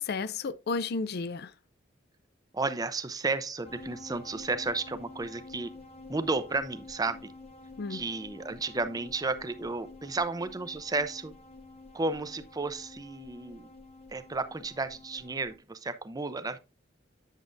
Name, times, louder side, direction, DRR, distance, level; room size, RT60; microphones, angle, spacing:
voice 1, 0.0-1.5 7.8-8.0, left 4 dB, 55° left, 0.4 m, -32 dB
voice 2, 2.5-5.7 6.1-7.3 7.9-11.3 11.9-13.7 14.1-16.6, right 3 dB, 20° right, 0.5 m, -33 dB
sound 1, 3.6-15.6, left 3 dB, 30° left, 0.8 m, -49 dB
8.1 x 7.4 x 2.6 m
head